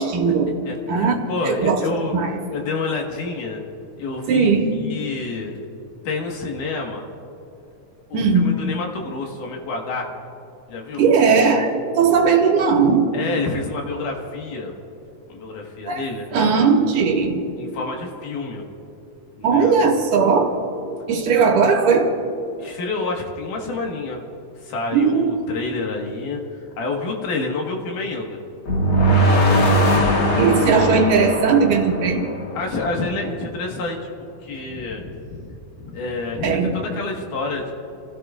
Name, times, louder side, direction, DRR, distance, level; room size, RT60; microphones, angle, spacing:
voice 1, 0.0-0.5 0.9-1.2 1.5-1.8 2.1-2.3 4.3-4.7 8.1-8.6 11.0-13.1 15.9-16.0 16.3-17.4 19.4-20.5 21.1-22.1 24.9-25.3 29.1-29.3 30.4-32.3 36.4-36.7, right 5 dB, 75° right, 1 dB, 2.9 m, -18 dB
voice 2, 0.7-2.2 2.5-3.6 4.0-4.5 4.7-5.6 6.0-7.1 8.1-10.1 10.7-11.1 13.1-14.7 15.3-16.3 17.6-18.7 19.4-19.7 22.6-24.2 24.6-28.4 29.4-29.7 32.5-34.0 34.4-37.7, left 3 dB, 75° left, 1 dB, 3.1 m, -28 dB
sound 1, 28.7-32.7, equal, 45° left, 2.3 m, -19 dB
30.0 x 16.5 x 2.4 m, 2.9 s
omnidirectional pair, 3.8 m